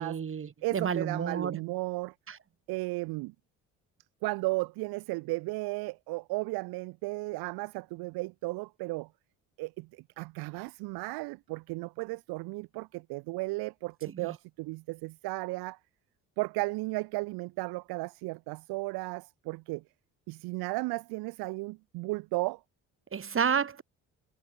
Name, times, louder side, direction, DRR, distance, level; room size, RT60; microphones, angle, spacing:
voice 1, 0.0-1.6 2.3-2.4 14.1-14.4 23.1-23.8, right 7 dB, 35° right, 1.5 m, -31 dB
voice 2, 0.6-2.1 2.7-3.3 4.2-9.1 9.6-15.8 16.4-19.8 20.3-22.6, right 23 dB, 80° right, 1.5 m, -34 dB
supercardioid pair, 65°, 37 cm